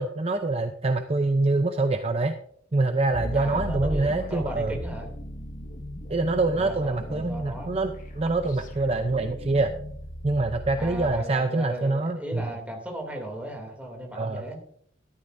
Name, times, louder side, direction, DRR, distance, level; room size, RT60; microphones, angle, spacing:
voice 1, 0.0-2.3 2.7-4.8 6.1-9.7 10.2-12.5 14.1-14.4, right 2 dB, 30° right, 7 dB, 0.6 m, -25 dB
sound 1, 3.1-11.2, equal, 45° left, 1.5 m, -37 dB
voice 2, 3.3-5.1 6.5-7.8 10.8-14.6, right 1 dB, 10° right, 1 dB, 2.6 m, -37 dB
13.5 x 12.5 x 2.6 m, 0.64 s
head